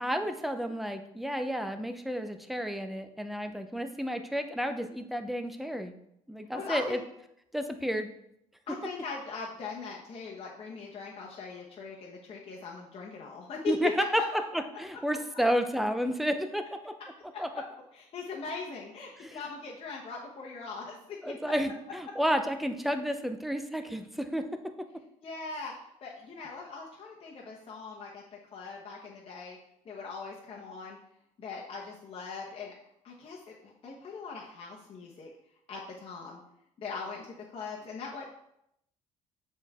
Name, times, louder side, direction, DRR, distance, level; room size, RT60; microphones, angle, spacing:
voice 1, 0.0-5.9 6.3-7.0 7.5-8.1 13.7-14.2 14.8-16.9 17.4-17.5 19.2-19.4 21.2-24.4, equal, ahead, 7 dB, 0.6 m, -31 dB
voice 2, 6.5-7.0 8.7-13.9 14.2-14.4 17.3-17.4 17.9-21.3 25.2-25.7 26.0-28.2 28.5-29.6 29.8-31.0 31.4-32.7 33.0-35.3 35.7-36.4 36.8-38.3, left 5 dB, 45° left, -3 dB, 1.0 m, -40 dB
6.9 x 4.2 x 3.6 m, 0.78 s
cardioid pair, 105°, 13 cm